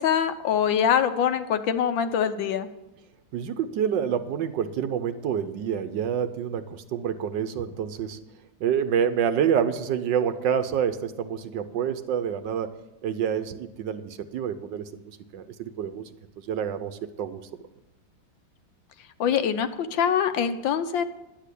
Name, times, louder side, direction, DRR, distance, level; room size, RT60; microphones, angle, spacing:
voice 1, 0.0-2.7 19.2-21.0, left 8 dB, 75° left, 10 dB, 1.5 m, -24 dB
voice 2, 3.3-8.2 8.6-12.8 13.0-16.1 16.4-17.4, right 8 dB, 70° right, 11 dB, 1.3 m, -27 dB
11.0 x 8.5 x 8.3 m, 0.97 s
omnidirectional pair, 2.2 m